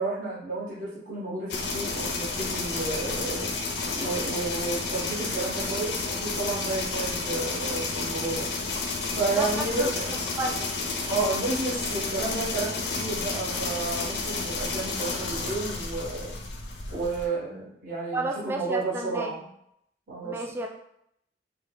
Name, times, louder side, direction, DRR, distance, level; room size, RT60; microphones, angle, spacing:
voice 1, 0.0-3.5 4.0-8.5 9.2-10.0 11.0-16.3 16.9-19.5 20.1-20.4, right 3 dB, 50° right, -8 dB, 1.0 m, -31 dB
sound 1, 1.5-17.3, left 3 dB, 75° left, 0.5 m, -31 dB
voice 2, 18.1-19.3 20.2-20.7, right 2 dB, 15° right, 1 dB, 0.3 m, -31 dB
3.2 x 2.2 x 3.3 m, 0.74 s
head